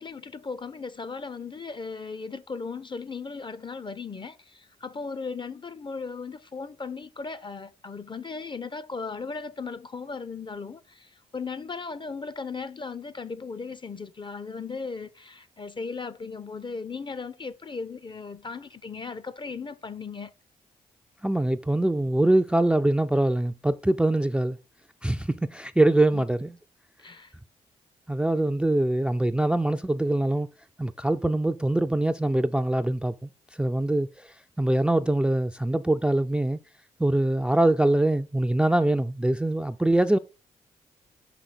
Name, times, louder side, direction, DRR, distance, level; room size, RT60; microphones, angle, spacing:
voice 1, 0.0-20.3 26.1-26.2 27.0-27.3, left 4 dB, 30° left, 0.7 m, -37 dB
voice 2, 21.2-24.6 25.0-26.6 28.1-30.5 30.8-33.3 33.6-36.6 37.0-40.2, right 1 dB, 5° right, 0.4 m, -23 dB
5.5 x 5.1 x 4.1 m
hypercardioid pair, 45°, 16 cm